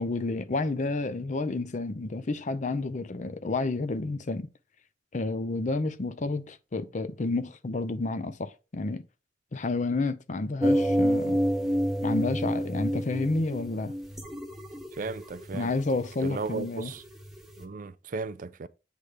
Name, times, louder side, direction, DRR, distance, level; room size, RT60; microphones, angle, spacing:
voice 1, 0.0-4.5 5.1-9.0 9.5-11.4 12.0-13.9 15.5-16.9, left 3 dB, 40° left, 0.6 m, -30 dB
sound 1, 10.6-17.6, equal, ahead, 1.1 m, -29 dB
voice 2, 15.0-15.7 16.2-17.0 17.6-18.7, right 4 dB, 45° right, 0.4 m, -35 dB
8.2 x 3.3 x 5.0 m
head